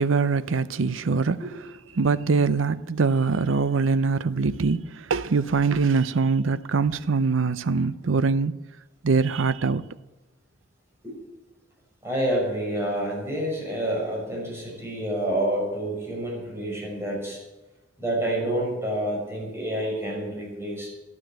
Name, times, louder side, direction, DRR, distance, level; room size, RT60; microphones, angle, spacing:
voice 1, 0.0-1.4 1.9-8.6 9.0-9.8, right 4 dB, 80° right, 0.6 m, -23 dB
voice 2, 12.0-17.4 18.0-20.9, right 1 dB, 15° right, 6.2 m, -28 dB
12.0 x 12.0 x 7.5 m
head